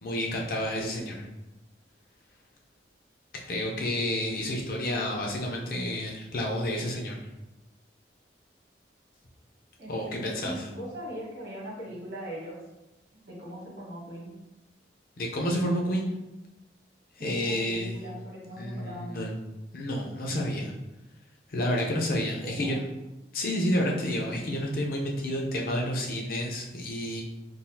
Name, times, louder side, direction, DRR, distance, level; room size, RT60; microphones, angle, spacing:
voice 1, 0.0-1.3 3.3-7.2 9.9-10.7 15.2-16.1 17.2-18.0 18.6-19.3 19.7-20.7 21.5-22.9 23.3-27.2, left 1 dB, 50° left, -1 dB, 0.6 m, -30 dB
voice 2, 9.8-12.5 13.1-14.3 17.2-19.3 22.2-22.8, equal, 80° right, -5 dB, 1.5 m, -40 dB
3.8 x 2.4 x 2.7 m, 0.99 s
head